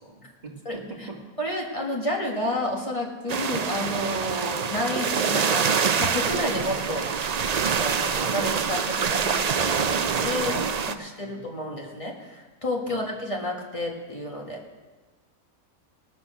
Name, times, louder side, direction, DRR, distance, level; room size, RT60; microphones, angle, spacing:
voice 1, 0.0-1.3 10.3-11.4 11.7-11.8 12.9-13.1, right 2 dB, 30° right, -1 dB, 2.4 m, -40 dB
voice 2, 1.4-7.1 7.8-14.6, left 1 dB, 20° left, 0 dB, 1.9 m, -31 dB
sound 1, 3.3-10.9, right 6 dB, 85° right, 0.3 m, -25 dB
19.5 x 7.4 x 6.4 m, 1.3 s
omnidirectional pair, 1.5 m